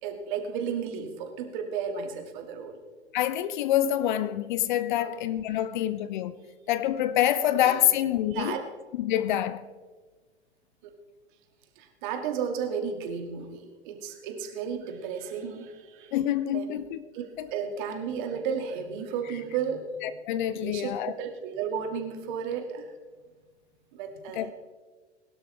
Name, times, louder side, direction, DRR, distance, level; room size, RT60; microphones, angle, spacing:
voice 1, 0.0-2.8 5.0-5.1 6.4-6.7 7.5-7.9 8.3-8.6 10.8-10.9 11.8-16.2 16.5-16.8 17.1-19.9 20.5-22.9 23.9-24.5, right 7 dB, 45° right, 2.2 m, -33 dB
voice 2, 3.1-6.4 6.7-8.5 8.9-9.6 16.1-17.0 17.4-17.5 20.0-21.1 24.3-24.5, left 12 dB, 45° left, 0.7 m, -26 dB
21.0 x 12.0 x 3.4 m
figure-of-eight pair, 100°, 34 cm